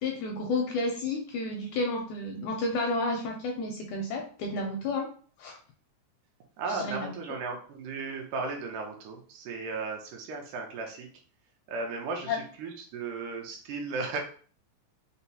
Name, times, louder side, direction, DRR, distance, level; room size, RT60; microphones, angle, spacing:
voice 1, 0.0-5.1 5.4-5.6 6.7-7.1 12.3-12.4, left 2 dB, 80° left, 2 dB, 1.7 m, -31 dB
voice 2, 6.6-11.1 11.7-14.2, right 4 dB, 80° right, 2 dB, 2.2 m, -35 dB
5.6 x 2.0 x 2.7 m, 0.43 s
omnidirectional pair, 3.8 m